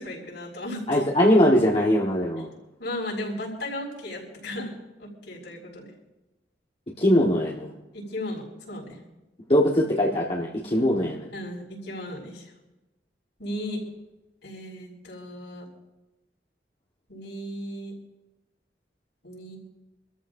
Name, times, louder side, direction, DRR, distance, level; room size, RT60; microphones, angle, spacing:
voice 1, 0.0-1.0 2.8-4.7 5.0-5.9 7.9-9.0 11.3-12.5 13.4-13.8 14.4-15.7 17.1-17.9 19.2-19.6, left 1 dB, 75° left, -3 dB, 5.7 m, -35 dB
voice 2, 0.9-2.5 7.0-7.7 9.5-11.3, equal, 35° left, -3 dB, 1.4 m, -21 dB
27.0 x 13.5 x 2.7 m, 1.0 s
head